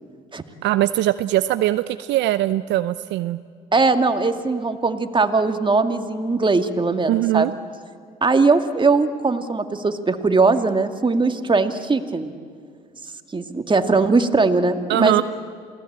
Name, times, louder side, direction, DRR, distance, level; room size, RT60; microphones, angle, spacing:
voice 1, 0.6-3.4 7.1-7.5 14.9-15.2, right 15 dB, 65° right, 13 dB, 0.6 m, -21 dB
voice 2, 3.7-7.6 8.2-12.3 13.3-15.2, right 3 dB, 25° right, 7 dB, 2.1 m, -20 dB
28.5 x 18.0 x 8.8 m, 2.2 s
hypercardioid pair, 60°, 19 cm